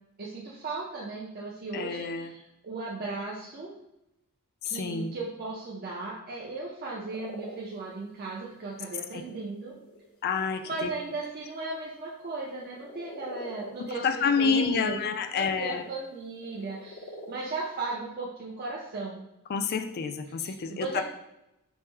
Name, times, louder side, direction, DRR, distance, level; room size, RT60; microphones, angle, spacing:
voice 1, 0.2-3.7 4.6-9.7 10.7-15.0 15.3-19.2 20.4-21.0, right 3 dB, 45° right, -4 dB, 0.5 m, -36 dB
voice 2, 1.7-2.3 4.6-5.1 9.1-9.2 10.2-10.9 13.9-15.9 19.5-21.0, left 5 dB, 45° left, 6 dB, 0.3 m, -28 dB
sound 1, 7.1-7.6 8.1-8.2 8.9-11.1 12.2-14.0 15.1-17.3, equal, 80° left, 0.8 m, -45 dB
3.5 x 2.1 x 4.3 m, 0.86 s
head